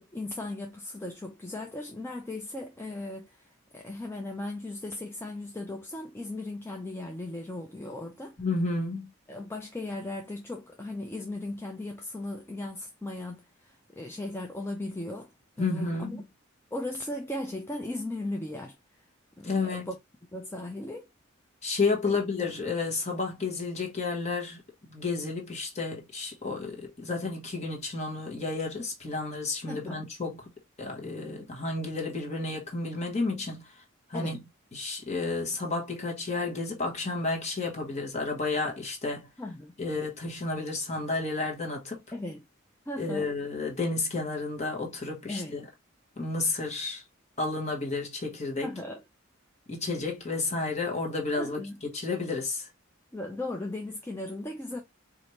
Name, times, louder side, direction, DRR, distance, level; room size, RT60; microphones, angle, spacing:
voice 1, 0.0-8.4 9.3-15.3 15.6-16.2 16.7-18.8 19.4-20.0 20.3-21.1 22.1-22.2 29.7-30.0 34.1-34.4 39.4-39.7 42.1-42.5 42.9-43.3 45.3-45.6 48.6-49.0 51.4-51.8 53.1-54.8, left 2 dB, 10° left, 0.4 m, -37 dB
voice 2, 8.4-9.1 15.6-16.2 19.4-19.9 21.6-30.5 30.8-33.7 34.1-34.4 34.7-39.3 39.8-42.0 43.0-45.6 46.2-47.0 47.4-48.7 49.7-52.7, left 3 dB, 30° left, 1.1 m, -31 dB
4.2 x 2.5 x 3.0 m
head